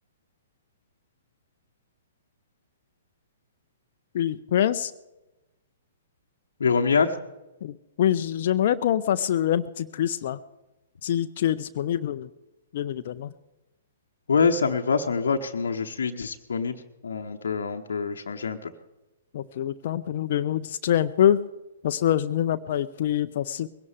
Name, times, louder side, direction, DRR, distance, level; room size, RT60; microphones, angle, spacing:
voice 1, 4.1-4.9 7.6-10.4 11.0-12.3 12.7-13.3 19.3-21.4 21.8-23.7, left 10 dB, 50° left, 10 dB, 0.5 m, -25 dB
voice 2, 6.6-7.1 14.3-18.7, left 5 dB, 65° left, 3 dB, 0.9 m, -25 dB
21.5 x 17.0 x 3.5 m, 1.0 s
figure-of-eight pair, 115°, 0 cm